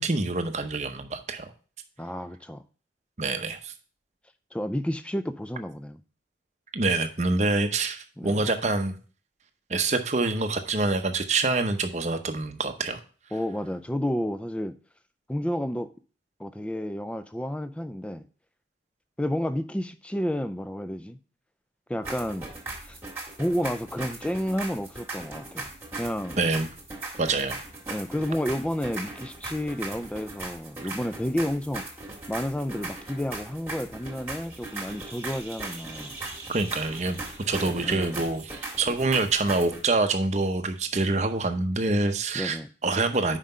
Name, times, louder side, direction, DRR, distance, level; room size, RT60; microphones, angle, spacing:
voice 1, 0.0-1.5 3.2-3.7 6.7-9.0 9.7-13.0 26.4-26.7 27.2-27.6 36.5-37.2 37.5-42.6 42.8-43.4, right 3 dB, 40° right, 0.7 m, -26 dB
voice 2, 2.0-2.6 4.5-6.0 8.2-8.4 13.3-14.8 15.3-15.9 16.4-18.2 19.2-21.2 21.9-22.5 22.8-23.0 23.4-25.7 26.0-26.4 27.9-31.8 32.3-36.1 37.7-38.2 42.3-42.7, equal, 5° left, 0.3 m, -31 dB
sound 1, 22.0-39.8, right 2 dB, 10° right, 1.7 m, -39 dB
5.7 x 5.0 x 5.3 m
head